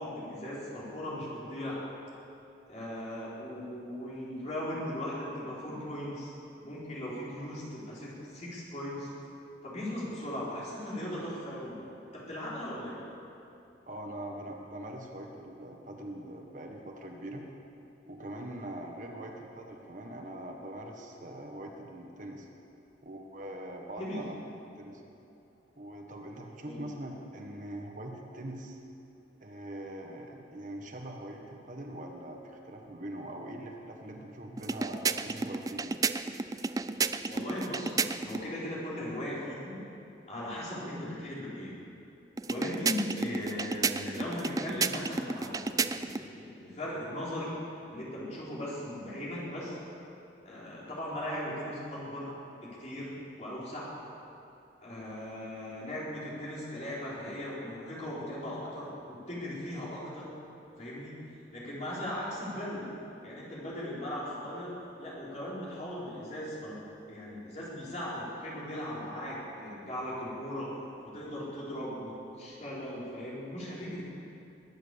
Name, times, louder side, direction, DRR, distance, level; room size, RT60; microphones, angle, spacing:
voice 1, 0.0-1.8 2.7-6.3 6.6-9.1 9.6-11.8 12.1-13.0 24.0-24.2 26.6-26.9 37.3-39.8 40.3-41.8 42.5-47.6 47.9-49.8 50.4-52.3 52.6-53.1 53.4-53.9 54.8-60.3 60.8-61.2 61.5-62.9 63.2-70.7 71.0-74.0, left 1 dB, 40° left, -7 dB, 4.5 m, -38 dB
voice 2, 13.9-17.4 18.1-22.5 23.0-24.4 24.8-25.0 25.8-28.8 29.4-36.0, right 1 dB, 45° right, 2 dB, 1.3 m, -42 dB
sound 1, 34.6-38.5 42.4-46.3, right 4 dB, 20° right, 0.3 m, -32 dB
21.5 x 9.0 x 7.0 m, 2.8 s
head